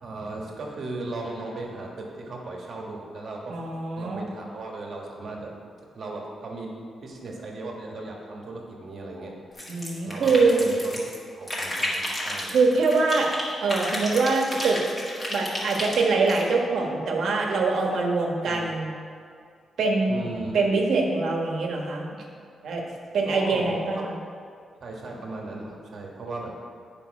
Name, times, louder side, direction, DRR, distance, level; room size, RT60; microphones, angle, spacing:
voice 1, 0.0-3.6 4.0-5.5 5.9-9.3 10.0-10.9 11.3-12.5 18.4-18.8 20.1-20.8 23.2-24.0 24.8-26.5, right 2 dB, 50° right, -1 dB, 1.5 m, -37 dB
voice 2, 3.5-4.2 9.7-10.6 12.5-13.3 13.6-14.8 15.3-18.9 19.8-20.2 20.5-22.1 22.6-22.8 23.1-24.1, right 3 dB, 75° right, 0 dB, 1.3 m, -23 dB
sound 1, 9.5-11.1 11.5-13.4 13.7-16.4, left 1 dB, 20° left, 1.8 m, -31 dB
9.4 x 5.4 x 5.3 m, 2.2 s
wide cardioid pair, 170°, 0 cm